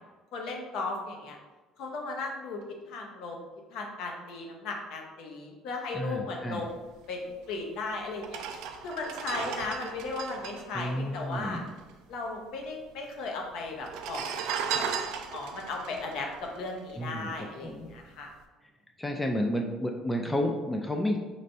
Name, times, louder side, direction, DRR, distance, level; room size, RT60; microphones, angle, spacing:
voice 1, 0.3-1.4 1.8-3.4 3.7-6.8 7.1-7.2 7.5-11.6 12.1-14.9 15.3-18.3, left 3 dB, 65° left, 1 dB, 0.8 m, -36 dB
voice 2, 5.9-6.6 10.7-11.7 17.0-17.3 17.6-18.0 19.0-21.2, equal, 10° left, 2 dB, 0.3 m, -31 dB
sound 1, 7.5-7.6 8.2-11.9 12.1-12.2 12.4-13.1 13.8-17.3 17.7-17.9, right 7 dB, 75° right, 0.3 m, -36 dB
4.3 x 3.1 x 2.6 m, 1.2 s
cardioid pair, 145°, 0 cm